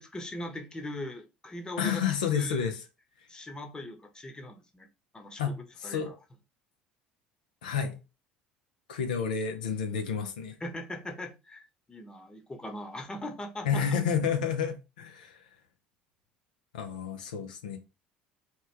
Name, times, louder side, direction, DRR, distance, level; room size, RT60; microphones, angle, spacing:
voice 1, 0.0-2.0 2.3-2.7 3.3-4.9 5.1-5.5 5.8-6.1 10.6-11.6 11.9-13.8, left 1 dB, 20° left, 0.9 m, -40 dB
voice 2, 1.8-2.8 5.4-6.1 7.6-8.0 8.9-10.6 13.6-15.4 16.7-17.8, left 7 dB, 90° left, 0.5 m, -30 dB
3.0 x 2.2 x 3.2 m
hypercardioid pair, 75°, 4 cm